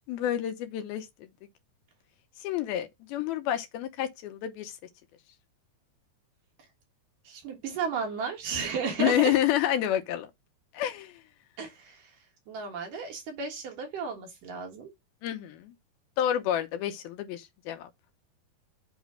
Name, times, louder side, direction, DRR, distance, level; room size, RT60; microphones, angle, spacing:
voice 1, 0.1-1.1 2.4-4.7 9.0-10.3 10.7-11.2 15.2-15.7 16.2-17.9, left 11 dB, 75° left, 2.6 m, -29 dB
voice 2, 7.3-9.4 11.6-12.1 12.5-14.9, right 5 dB, 60° right, 3.0 m, -33 dB
8.1 x 3.1 x 6.1 m
omnidirectional pair, 4.5 m